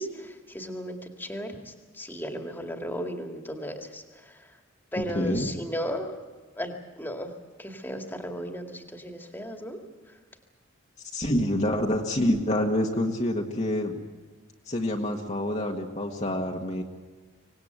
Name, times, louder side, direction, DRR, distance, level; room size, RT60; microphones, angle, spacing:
voice 1, 0.0-4.0 4.3-4.4 4.9-6.2 6.6-6.7 7.0-7.3 7.6-9.8, equal, 10° left, 3 dB, 2.2 m, -35 dB
voice 2, 5.1-5.5 11.1-14.0 14.7-16.8, left 1 dB, 35° left, 0 dB, 1.7 m, -27 dB
25.0 x 19.0 x 8.1 m, 1.4 s
head